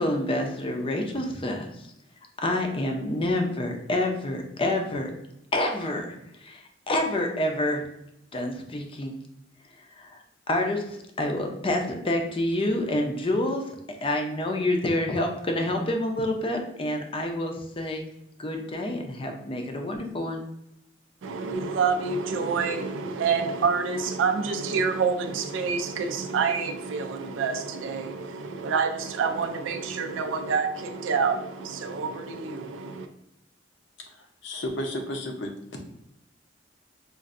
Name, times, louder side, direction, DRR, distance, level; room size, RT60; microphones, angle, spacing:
voice 1, 0.0-1.9 2.4-5.1 5.5-7.8 8.3-9.1 10.0-10.2 10.5-13.7 14.0-18.0 18.4-20.4, left 1 dB, 30° left, 0.5 m, -28 dB
voice 2, 21.2-33.1, right 5 dB, 85° right, 0.4 m, -27 dB
voice 3, 34.1-35.5, left 1 dB, 65° left, 0.7 m, -33 dB
5.2 x 2.5 x 2.5 m
head